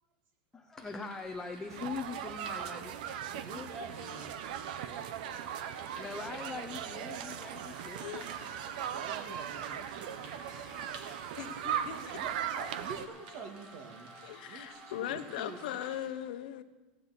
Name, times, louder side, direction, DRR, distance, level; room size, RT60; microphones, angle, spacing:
voice 1, 0.5-3.7 5.9-8.5, left 4 dB, 10° left, 4 dB, 0.7 m, -42 dB
sound 1, 0.8-16.0, equal, 15° right, 1.1 m, -56 dB
sound 2, 0.8-16.1, right 3 dB, 90° right, 3.2 m, -54 dB
sound 3, 1.7-13.1, right 9 dB, 70° right, 0.9 m, -39 dB
voice 2, 3.3-4.6 8.7-10.4 12.0-14.1 14.5-15.8, right 4 dB, 50° right, 4 dB, 1.7 m, -47 dB
voice 3, 11.4-12.2 14.2-16.6, left 12 dB, 75° left, 9 dB, 1.0 m, -39 dB
17.5 x 9.9 x 4.1 m, 1.2 s
supercardioid pair, 160°, 5 cm